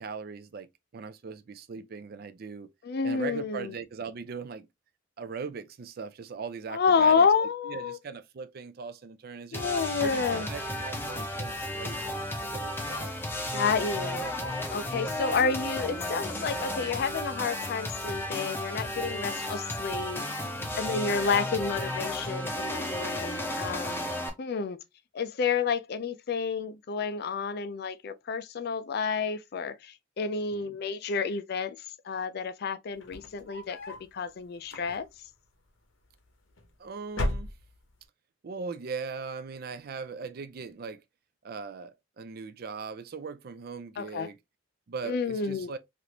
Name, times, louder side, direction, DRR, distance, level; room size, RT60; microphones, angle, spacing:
voice 1, 0.0-2.7 3.0-4.7 5.2-7.3 7.7-9.7 10.0-13.1 18.9-19.2 20.4-20.9 23.9-24.3 30.5-30.8 36.8-37.5 38.4-41.0 41.4-44.4 44.9-45.8, right 5 dB, 50° right, 0.4 m, -40 dB
voice 2, 2.8-3.7 6.7-8.0 9.5-10.5 13.5-14.3 14.7-20.3 20.7-24.1 24.4-24.8 25.1-31.8 32.1-35.1 44.0-44.3 45.0-45.7, left 5 dB, 55° left, 0.4 m, -29 dB
sound 1, 9.5-24.3, left 1 dB, 10° left, 0.6 m, -33 dB
sound 2, 32.9-34.1 34.6-35.3 36.2-36.7 37.1-38.0, left 1 dB, 85° left, 0.9 m, -35 dB
3.3 x 2.5 x 2.8 m
head